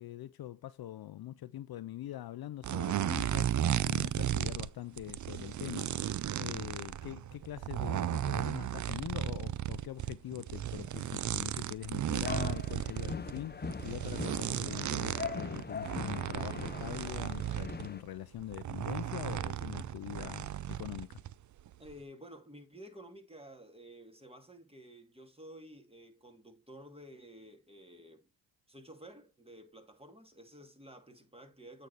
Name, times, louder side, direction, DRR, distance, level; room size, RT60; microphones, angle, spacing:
voice 1, 0.0-21.2, left 13 dB, 55° left, 0.6 m, -43 dB
sound 1, 2.6-4.7 5.0-17.9 18.4-21.3 21.6-21.9, right 11 dB, 40° right, 0.5 m, -35 dB
sound 2, 12.2-18.0, left 5 dB, 20° left, 0.8 m, -41 dB
voice 2, 21.8-28.3 28.7-31.9, equal, 10° right, 2.3 m, -52 dB
8.3 x 4.9 x 4.1 m
supercardioid pair, 60°, 46 cm